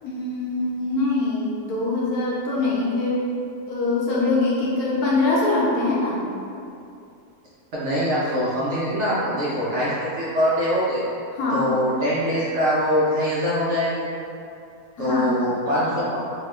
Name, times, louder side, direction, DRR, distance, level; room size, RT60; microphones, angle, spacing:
voice 1, 0.0-3.2 3.7-6.2 11.3-11.7 15.0-15.5, left 2 dB, 75° left, -6 dB, 1.1 m, -23 dB
voice 2, 7.7-11.0 11.5-14.1 15.0-16.2, equal, 65° right, -9 dB, 0.7 m, -23 dB
2.8 x 2.2 x 3.1 m, 2.6 s
omnidirectional pair, 1.6 m